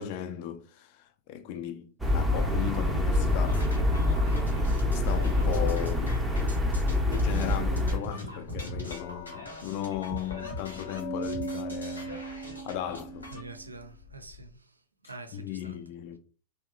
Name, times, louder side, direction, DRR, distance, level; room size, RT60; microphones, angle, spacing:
voice 1, 0.0-3.7 4.9-6.3 7.0-12.2 12.7-13.3 15.3-16.2, left 10 dB, 45° left, 0.3 m, -36 dB
sound 1, 2.0-8.0, left 2 dB, 5° right, 0.5 m, -26 dB
sound 2, 3.5-13.4, equal, 80° left, 1.1 m, -42 dB
Glass, 8.4-14.4, right 1 dB, 65° left, 0.7 m, -40 dB
voice 2, 13.3-14.7 15.0-15.8, right 3 dB, 80° right, 0.4 m, -45 dB
2.6 x 2.2 x 2.4 m
figure-of-eight pair, 90°, 0 cm